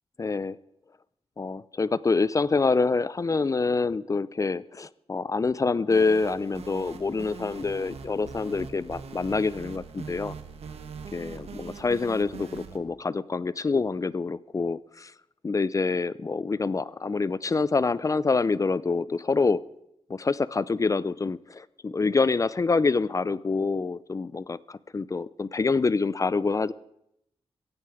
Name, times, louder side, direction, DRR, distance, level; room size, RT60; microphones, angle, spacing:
voice 1, 0.2-0.6 1.4-10.3 11.1-15.1 15.4-19.6 20.1-26.7, left 4 dB, 35° left, 0.5 m, -26 dB
sound 1, 5.9-12.8, right 5 dB, 85° right, 1.4 m, -42 dB
16.5 x 16.0 x 4.8 m
wide cardioid pair, 90°, 10 cm